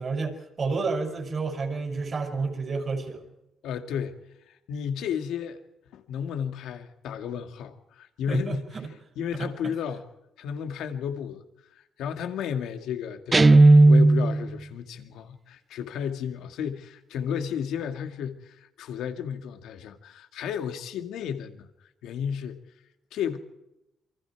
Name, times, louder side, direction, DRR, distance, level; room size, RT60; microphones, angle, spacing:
voice 1, 0.0-3.3 8.3-8.9 9.4-9.5, right 4 dB, 45° right, 5 dB, 6.2 m, -30 dB
voice 2, 3.6-4.2 4.7-5.6 5.9-8.6 9.2-10.0 10.4-11.5 12.0-21.7 22.0-22.6 23.1-23.4, left 8 dB, 85° left, 6 dB, 2.1 m, -33 dB
Guitar, 13.3-14.5, right 2 dB, 25° right, 0.7 m, -14 dB
28.5 x 24.5 x 4.7 m, 0.91 s
cardioid pair, 90°, 0 cm